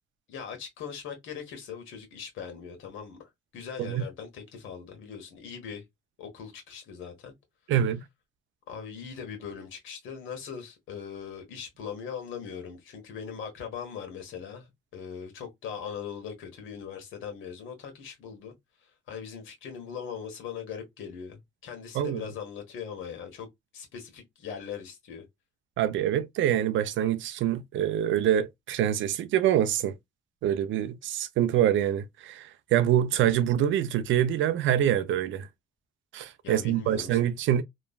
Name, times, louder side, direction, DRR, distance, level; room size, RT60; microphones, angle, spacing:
voice 1, 0.3-5.8 6.2-7.3 8.7-18.5 19.1-23.5 23.7-25.2 36.4-37.2, left 7 dB, 85° left, 1.3 m, -40 dB
voice 2, 7.7-8.0 21.9-22.2 25.8-29.9 30.4-35.5 36.1-37.6, right 11 dB, 75° right, 0.5 m, -25 dB
3.0 x 2.2 x 2.3 m
cardioid pair, 90°, 20 cm